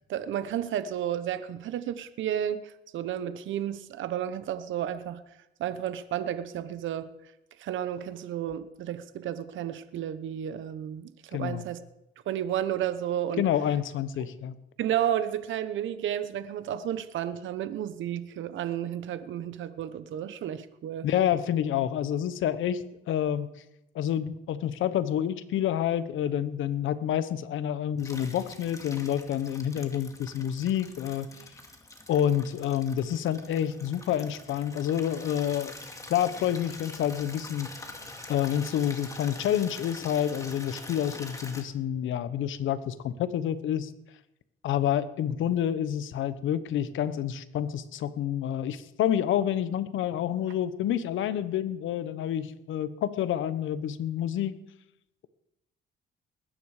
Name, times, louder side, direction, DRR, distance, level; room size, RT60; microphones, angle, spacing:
voice 1, 0.1-5.2 5.6-7.1 7.6-11.8 12.3-13.5 14.8-21.1, right 10 dB, 75° right, 13 dB, 0.9 m, -32 dB
voice 2, 11.3-11.7 13.4-14.5 21.0-23.5 23.9-31.3 32.1-35.7 36.1-37.7 38.3-43.9 44.6-54.5, left 10 dB, 80° left, 14 dB, 1.0 m, -28 dB
Water tap faucet / Liquid, 28.0-41.6, left 2 dB, 15° left, 2.2 m, -45 dB
20.5 x 10.0 x 4.9 m, 0.89 s
cardioid pair, 90°, 20 cm